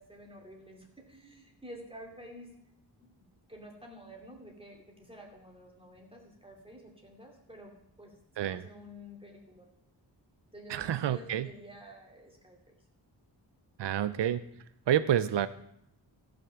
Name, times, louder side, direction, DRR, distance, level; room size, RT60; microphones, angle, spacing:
voice 1, 0.0-2.5 3.0-9.7 10.5-12.6, equal, 15° right, -1 dB, 2.6 m, -50 dB
voice 2, 10.7-11.5 13.8-14.4 14.9-15.5, right 10 dB, 75° right, 14 dB, 0.6 m, -28 dB
14.5 x 6.1 x 7.0 m, 0.74 s
wide cardioid pair, 120°, 43 cm